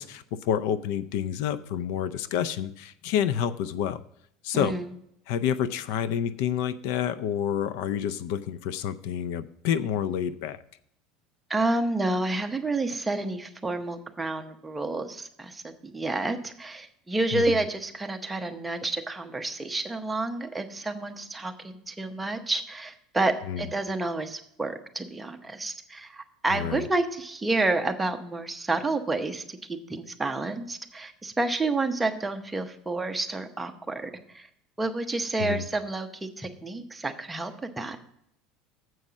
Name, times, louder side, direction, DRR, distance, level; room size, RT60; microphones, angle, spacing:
voice 1, 0.0-4.0 4.4-4.8 5.3-10.6 17.3-17.5 23.5-23.7 26.5-26.9 35.4-35.7, left 9 dB, 70° left, 14 dB, 0.4 m, -28 dB
voice 2, 4.5-4.9 11.5-34.5 34.8-38.0, right 2 dB, 10° right, 6 dB, 0.7 m, -29 dB
7.7 x 5.3 x 7.1 m, 0.72 s
cardioid pair, 145°, 0 cm